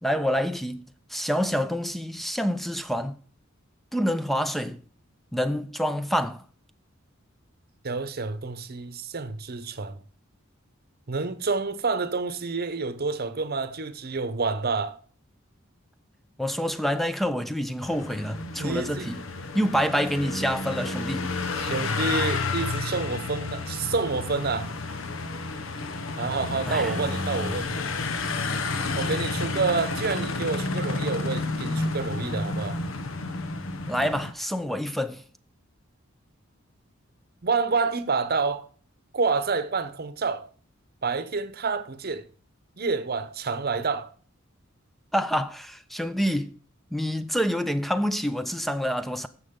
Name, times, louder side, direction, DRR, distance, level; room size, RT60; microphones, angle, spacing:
voice 1, 0.0-0.9 1.1-3.2 3.9-4.8 5.3-6.4 16.4-19.3 19.6-21.3 26.7-27.1 33.9-35.2 45.1-46.5 46.9-49.3, equal, ahead, 0.5 m, -27 dB
voice 2, 7.8-10.0 11.1-15.0 18.6-19.1 21.5-24.7 26.2-27.8 28.9-32.8 37.4-38.7 39.1-40.5 41.0-42.2 42.8-44.1, right 4 dB, 50° right, 0.9 m, -28 dB
sound 1, 17.8-34.3, left 3 dB, 80° left, 1.0 m, -31 dB
14.5 x 6.2 x 3.7 m
head